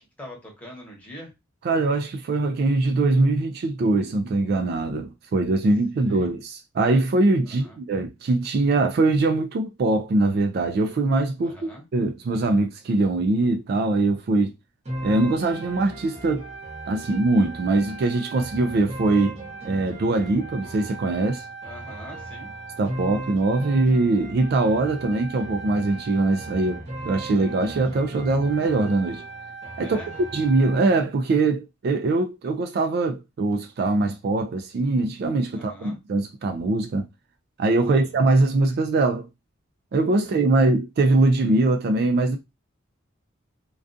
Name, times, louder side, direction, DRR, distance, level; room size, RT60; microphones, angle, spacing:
voice 1, 0.2-1.3 6.1-6.4 7.4-7.8 11.4-11.8 21.6-22.5 29.8-30.2 35.5-36.0 37.9-38.2 40.2-40.3 40.6-40.7, equal, 10° left, 0.9 m, -43 dB
voice 2, 1.6-14.5 15.0-16.5 16.9-19.4 19.6-21.4 22.8-29.2 29.8-30.0 30.3-37.1 37.6-39.3 39.9-42.4, right 2 dB, 50° right, 0.3 m, -22 dB
sound 1, 14.9-30.9, right 2 dB, 35° right, 0.8 m, -37 dB
2.3 x 2.3 x 2.5 m
head